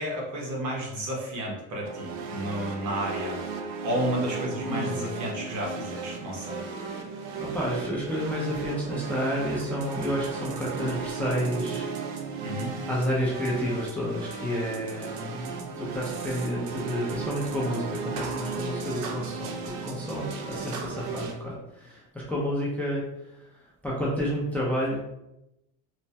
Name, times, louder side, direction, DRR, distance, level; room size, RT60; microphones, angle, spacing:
voice 1, 0.0-3.4 3.8-6.6 12.4-12.8, equal, 55° right, -2 dB, 1.0 m, -31 dB
sound 1, 1.8-21.3, right 4 dB, 75° right, 0.6 m, -35 dB
voice 2, 4.6-5.1 7.4-11.9 12.9-23.0 23.8-25.0, equal, 5° left, -5 dB, 0.5 m, -30 dB
3.1 x 2.1 x 2.7 m, 0.89 s
cardioid pair, 140°, 35 cm